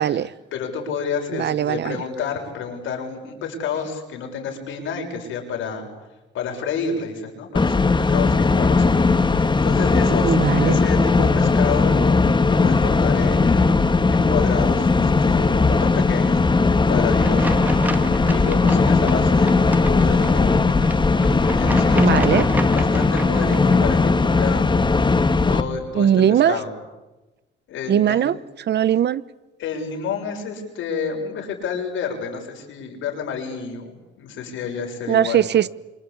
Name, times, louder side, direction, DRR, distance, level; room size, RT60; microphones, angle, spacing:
voice 1, 0.0-5.9 6.3-17.9 18.2-20.6 21.2-24.7 25.5-26.7 27.7-28.2 29.6-35.4, left 6 dB, 85° left, 2 dB, 6.8 m, -30 dB
voice 2, 1.3-2.0 10.2-10.8 21.9-22.5 26.0-26.6 27.9-28.4 28.7-29.2 35.1-35.7, right 9 dB, 60° right, 17 dB, 1.0 m, -19 dB
sound 1, 7.5-25.6, left 4 dB, 25° left, 1.9 m, -18 dB
sound 2, 17.2-23.8, right 1 dB, 10° right, 2.0 m, -31 dB
27.0 x 25.5 x 8.6 m, 1.1 s
cardioid pair, 90°, 20 cm